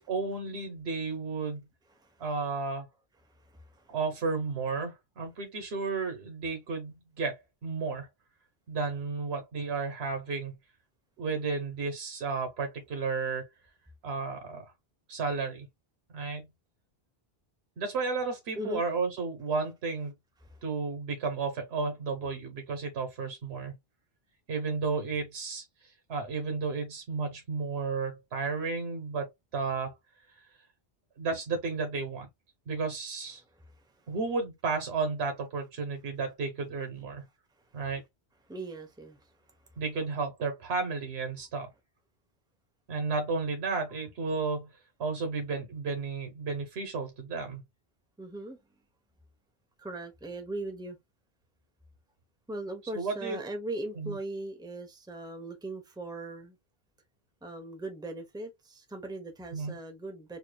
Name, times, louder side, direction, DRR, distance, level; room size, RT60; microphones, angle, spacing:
voice 1, 0.0-1.6 2.2-2.9 3.9-8.1 8.7-10.6 11.2-13.5 14.0-14.7 15.1-15.7 16.1-16.5 17.8-20.1 20.6-23.8 24.5-29.9 31.2-32.3 32.7-33.4 34.1-37.3 37.7-38.0 39.8-41.7 42.9-44.7 45.0-47.6 52.9-53.4 54.0-54.2 59.5-59.7, right 4 dB, 75° right, 1.2 m, -33 dB
voice 2, 3.4-4.0 18.5-18.8 20.4-20.6 33.5-34.0 38.5-39.3 48.2-48.6 49.8-51.0 52.5-56.6 57.4-60.4, right 1 dB, 5° right, 0.8 m, -39 dB
4.8 x 2.8 x 2.2 m
omnidirectional pair, 1.1 m